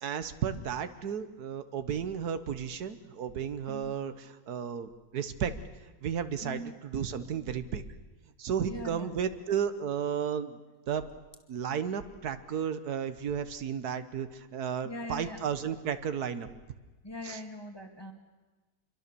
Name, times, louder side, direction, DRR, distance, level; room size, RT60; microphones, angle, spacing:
voice 1, 0.0-5.5 6.0-7.8 8.4-10.6 10.9-11.0 11.5-16.5 17.2-17.4, right 8 dB, 85° right, 11 dB, 1.6 m, -33 dB
voice 2, 6.4-6.7 8.6-9.2 14.8-15.5 17.0-18.1, left 1 dB, 15° left, 3 dB, 2.3 m, -41 dB
26.0 x 22.5 x 6.9 m, 1.3 s
omnidirectional pair, 1.6 m